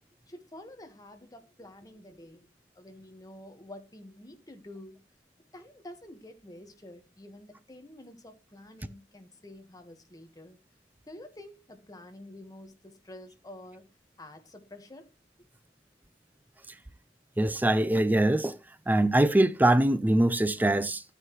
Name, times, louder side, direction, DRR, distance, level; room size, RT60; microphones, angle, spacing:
voice 1, 0.3-2.5 2.7-5.0 5.5-10.6 11.1-13.9 14.2-15.1, left 1 dB, 20° left, 1.4 m, -48 dB
voice 2, 17.4-18.6 18.9-21.0, right 1 dB, 10° right, 0.4 m, -23 dB
12.5 x 9.7 x 3.1 m
head